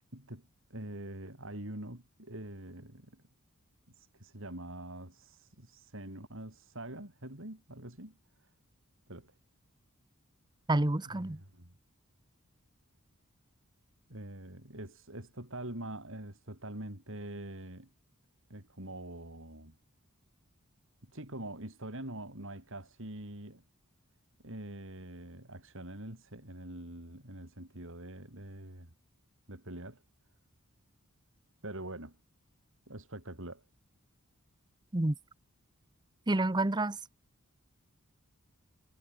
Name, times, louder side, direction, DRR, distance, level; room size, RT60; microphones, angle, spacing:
voice 1, 0.1-3.2 3.9-8.5 9.1-9.3 11.1-11.7 14.1-17.9 18.5-19.8 21.1-23.6 24.4-28.9 29.5-30.0 31.6-32.2 32.9-33.6, right 1 dB, 60° right, 5.4 m, -44 dB
voice 2, 10.7-11.4 34.9-35.1 36.3-37.0, right 2 dB, 20° right, 0.8 m, -28 dB
head